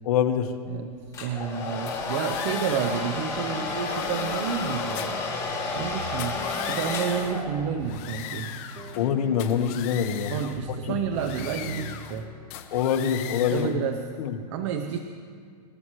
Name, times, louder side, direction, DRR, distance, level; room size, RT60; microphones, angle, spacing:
voice 1, 0.0-0.5 8.9-10.3 10.7-10.8 12.7-13.7 14.2-14.3, left 8 dB, 60° left, 5 dB, 1.5 m, -24 dB
Domestic sounds home sounds, 1.1-7.8, left 4 dB, 15° left, 5.3 m, -31 dB
voice 2, 1.2-5.2 5.7-8.5 10.3-12.3 13.5-14.2 14.5-15.0, right 8 dB, 45° right, 6 dB, 0.9 m, -30 dB
sound 1, 1.9-3.1 3.6-5.3 6.1-7.4 7.8-9.1 9.4-10.6 11.1-12.2 12.5-13.8, left 11 dB, 30° left, 1.0 m, -39 dB
sound 2, 3.3-12.8, left 1 dB, 20° right, 3.0 m, -42 dB
28.0 x 14.0 x 3.2 m, 2.2 s
supercardioid pair, 160°, 21 cm